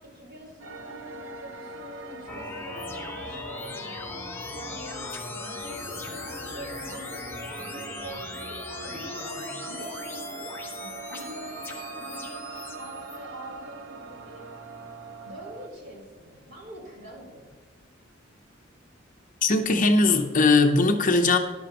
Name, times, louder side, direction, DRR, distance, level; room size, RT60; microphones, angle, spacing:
voice 1, 0.0-3.8 4.5-8.3 8.8-10.3 10.8-14.5 15.2-17.5, equal, 55° right, -3 dB, 4.0 m, -44 dB
sound 1, 0.6-15.7, right 3 dB, 75° right, 0.8 m, -42 dB
sound 2, 2.3-13.2, left 3 dB, 10° left, 1.2 m, -38 dB
voice 2, 19.4-21.4, left 3 dB, 40° left, 6 dB, 0.8 m, -20 dB
13.0 x 11.0 x 3.0 m, 1.3 s
head